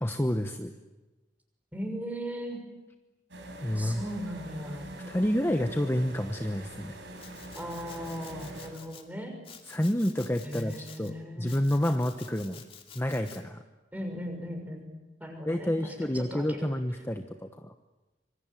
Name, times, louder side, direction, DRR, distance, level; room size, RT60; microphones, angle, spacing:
voice 1, 0.0-0.7 3.6-4.0 5.1-6.9 9.7-12.6 12.9-13.6 15.5-17.7, equal, 15° left, 6 dB, 1.1 m, -29 dB
voice 2, 1.7-2.6 3.7-4.9 7.5-9.4 10.4-11.6 13.9-14.9 15.2-16.7, equal, 10° right, 4 dB, 6.4 m, -38 dB
sound 1, 3.3-8.7, right 1 dB, 75° right, 7.1 m, -44 dB
Domestic sounds home sounds, 7.2-9.0 9.4-11.1 11.5-13.4, left 7 dB, 30° left, 2.9 m, -50 dB
26.0 x 24.0 x 9.1 m, 1.1 s
head